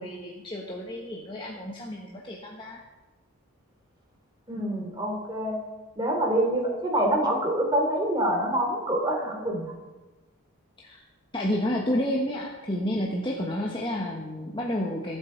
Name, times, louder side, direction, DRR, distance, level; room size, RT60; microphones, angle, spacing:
voice 1, 0.0-2.8 10.8-11.0 11.3-15.2, left 1 dB, 20° left, -1 dB, 1.2 m, -30 dB
voice 2, 4.5-5.6 5.9-9.7, right 1 dB, 20° right, 0 dB, 3.2 m, -26 dB
24.0 x 8.2 x 4.6 m, 1.2 s
head